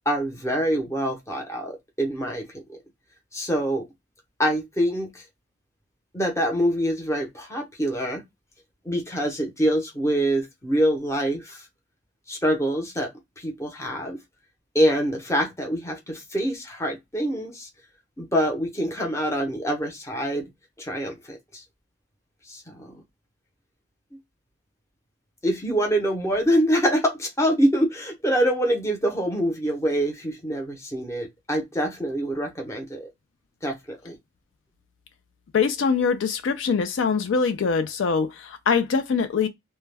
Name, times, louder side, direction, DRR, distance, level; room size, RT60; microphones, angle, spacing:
voice 1, 0.1-2.5 3.3-3.9 4.4-5.2 6.1-8.2 8.8-11.6 12.3-13.1 13.4-14.2 14.7-17.7 18.2-20.5 20.8-21.6 22.5-23.0 25.4-33.1 33.6-34.2, equal, 15° left, 0.7 m, -25 dB
voice 2, 35.5-39.5, left 5 dB, 70° left, 0.4 m, -23 dB
2.2 x 2.1 x 3.2 m
head